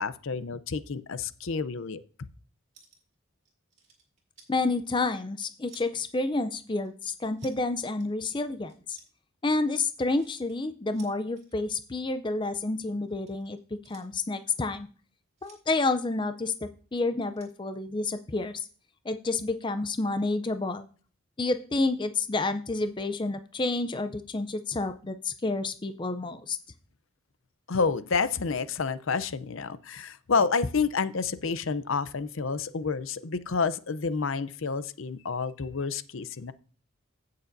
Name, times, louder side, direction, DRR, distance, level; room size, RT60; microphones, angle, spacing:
voice 1, 0.0-2.0 27.7-36.5, left 5 dB, 65° left, 13 dB, 0.6 m, -29 dB
sound 1, 2.7-3.1 3.5-4.5 5.1-6.1 6.8-7.6 8.0-8.1 8.7-9.1 9.7-10.6 10.9-11.5 12.4-14.1 15.4-16.0 17.2-17.5, right 5 dB, 30° right, 2.3 m, -56 dB
voice 2, 4.5-9.0 9.4-14.9 15.4-18.7 19.0-20.9 21.4-26.6, left 3 dB, 20° left, 9 dB, 0.5 m, -29 dB
16.0 x 6.6 x 2.6 m, 0.41 s
head